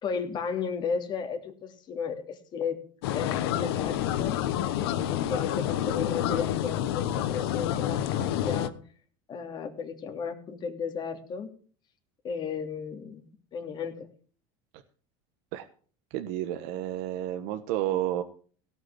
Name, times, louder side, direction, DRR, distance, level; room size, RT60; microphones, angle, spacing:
voice 1, 0.0-2.8 3.1-4.4 4.9-8.7 9.3-11.5 12.2-14.1, left 6 dB, 35° left, 4 dB, 3.0 m, -34 dB
sound 1, 3.0-8.7, left 11 dB, 90° left, 1.1 m, -28 dB
voice 2, 16.1-18.2, right 12 dB, 70° right, 7 dB, 1.2 m, -31 dB
17.0 x 6.0 x 8.2 m, 0.43 s
supercardioid pair, 130°, 13 cm